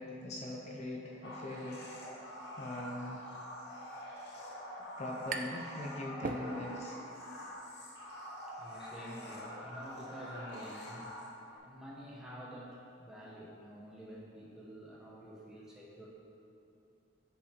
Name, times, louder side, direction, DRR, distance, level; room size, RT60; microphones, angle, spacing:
voice 1, 0.0-1.9 2.6-3.2 4.3-4.5 5.0-7.0, left 1 dB, 35° left, -1 dB, 0.5 m, -41 dB
sound 1, 1.2-11.6, equal, 60° left, 1.0 m, -46 dB
sound 2, 4.7-5.7 6.0-6.9, right 3 dB, 45° right, 0.4 m, -40 dB
voice 2, 8.5-11.2 11.6-16.1, equal, 5° right, -6 dB, 0.8 m, -49 dB
10.0 x 4.0 x 2.8 m, 2.8 s
head